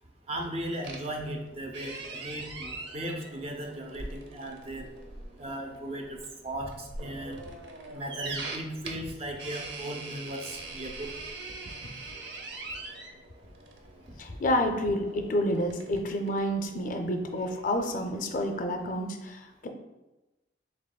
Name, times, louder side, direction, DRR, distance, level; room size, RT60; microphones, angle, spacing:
voice 1, 0.3-4.9 5.4-7.4 7.8-11.1 11.8-11.9, right 1 dB, 35° right, 2 dB, 0.5 m, -37 dB
sound 1, 0.8-19.0, right 3 dB, 70° right, 0.6 m, -43 dB
voice 2, 14.2-19.7, left 1 dB, 45° left, 5 dB, 0.4 m, -29 dB
6.8 x 2.9 x 2.2 m, 1.0 s
head